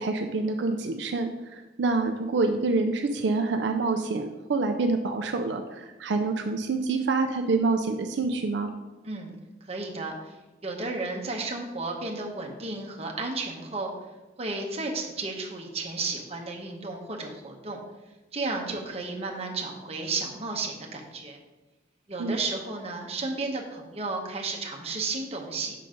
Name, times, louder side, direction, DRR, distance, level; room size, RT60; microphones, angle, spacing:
voice 1, 0.0-8.7 22.2-22.4, right 3 dB, 70° right, 5 dB, 0.4 m, -27 dB
voice 2, 9.6-10.3 10.6-13.9 14.4-17.8 18.3-21.4 22.1-25.7, right 3 dB, 35° right, 0 dB, 0.9 m, -33 dB
5.6 x 3.9 x 4.9 m, 1.1 s
head